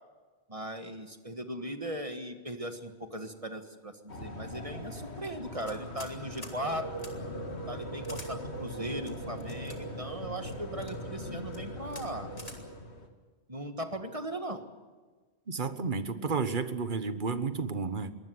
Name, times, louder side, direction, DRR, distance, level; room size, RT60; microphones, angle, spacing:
voice 1, 0.5-7.1 7.7-12.3 13.5-14.6, right 1 dB, 30° right, 7 dB, 1.7 m, -38 dB
sound 1, 4.1-13.1, equal, 85° left, 2.5 m, -40 dB
sound 2, 5.6-6.1 6.4-6.6 7.0-7.1 8.0-8.3 9.0-9.8 10.5-10.9 11.5-11.6 11.9-12.1 12.4-12.6, left 1 dB, 35° left, 3.2 m, -47 dB
voice 2, 15.5-18.1, right 4 dB, 50° right, 11 dB, 1.4 m, -31 dB
23.0 x 19.0 x 7.9 m, 1.4 s
omnidirectional pair, 1.1 m